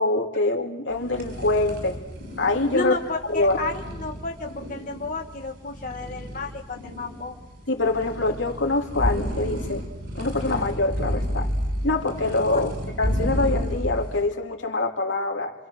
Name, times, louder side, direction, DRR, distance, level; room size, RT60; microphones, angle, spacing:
voice 1, 0.0-2.0 2.4-3.0 3.3-3.6 7.7-9.8 10.1-11.5 11.8-12.7 13.0-15.5, left 2 dB, 85° left, 2 dB, 2.9 m, -24 dB
sound 1, 0.9-14.3, equal, 55° right, 6.5 m, -31 dB
voice 2, 2.7-7.4 12.5-12.6, left 3 dB, 45° left, 2 dB, 1.3 m, -31 dB
27.0 x 26.5 x 6.4 m, 0.99 s
head